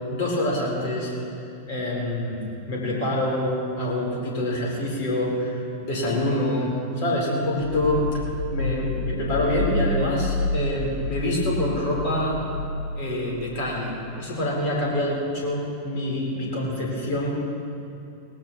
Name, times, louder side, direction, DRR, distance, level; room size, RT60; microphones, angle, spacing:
voice 1, 0.1-1.1 1.7-2.4 2.7-6.7 7.0-8.1 8.5-12.4 13.0-17.3, left 1 dB, 50° left, -3 dB, 4.2 m, -26 dB
sound 1, 7.6-14.3, left 2 dB, 85° left, 0.9 m, -29 dB
19.5 x 16.5 x 3.2 m, 2.7 s
figure-of-eight pair, 90°, 0 cm